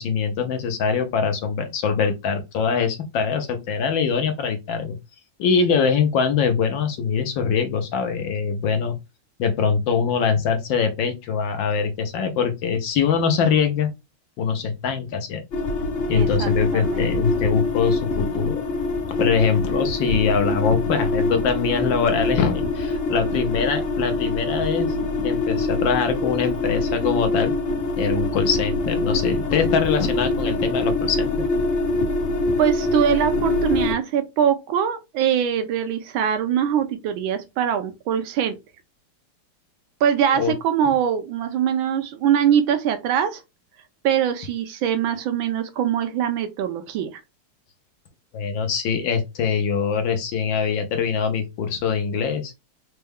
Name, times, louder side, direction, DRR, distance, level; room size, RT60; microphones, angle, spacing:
voice 1, 0.0-5.0 5.4-9.0 9.4-13.9 14.4-15.4 16.1-18.6 19.1-24.9 25.2-27.5 28.0-31.3 40.3-40.5 48.3-52.5, left 6 dB, 70° left, 1.3 m, -23 dB
sound 1, 15.5-33.9, left 2 dB, 40° left, 1.3 m, -24 dB
voice 2, 16.1-17.1 32.6-38.6 40.0-43.4 44.0-47.2, right 9 dB, 75° right, 1.3 m, -22 dB
4.3 x 2.2 x 3.3 m
omnidirectional pair, 2.4 m